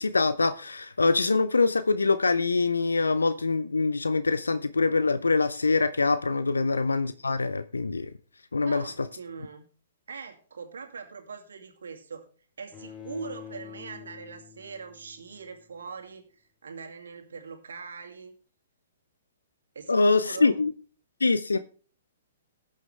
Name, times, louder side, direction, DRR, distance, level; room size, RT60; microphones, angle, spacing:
voice 1, 0.0-8.1 8.5-8.8 19.9-20.7 21.2-21.6, left 3 dB, 85° left, 0.6 m, -24 dB
voice 2, 8.6-9.7 10.1-12.3 12.6-16.3 16.6-18.3 19.7-20.6 21.5-21.6, right 5 dB, 75° right, 2.4 m, -42 dB
Bowed string instrument, 12.7-15.8, left 8 dB, 30° left, 3.0 m, -46 dB
19.0 x 6.6 x 3.3 m
figure-of-eight pair, 120°, 0 cm